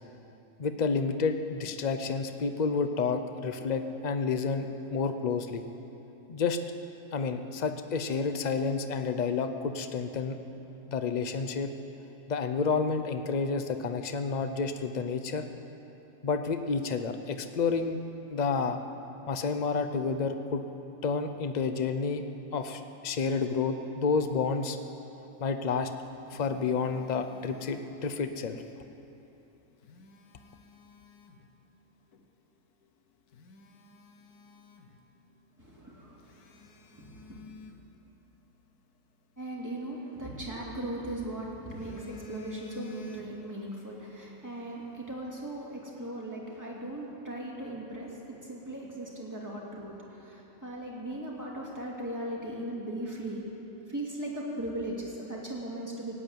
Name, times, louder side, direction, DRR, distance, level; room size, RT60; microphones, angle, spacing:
voice 1, 0.6-5.6 6.3-6.6 7.1-10.4 10.9-11.7 12.3-15.4 16.2-18.0 18.3-18.8 19.3-20.6 21.0-22.2 22.5-24.8 25.4-25.9 26.3-28.6, left 5 dB, 45° left, 8 dB, 0.6 m, -30 dB
Telephone, 25.8-28.3 29.6-31.5 32.1-32.3 32.8-32.9 33.3-35.3 35.6-35.7 36.2-38.6 40.1-41.1 41.5-43.7 43.9-44.2, left 3 dB, 80° left, 1.5 m, -49 dB
voice 2, 35.6-37.4 39.4-53.4 53.9-56.1, right 1 dB, 10° right, -4 dB, 2.5 m, -38 dB
16.0 x 8.7 x 9.0 m, 3.0 s
omnidirectional pair, 1.6 m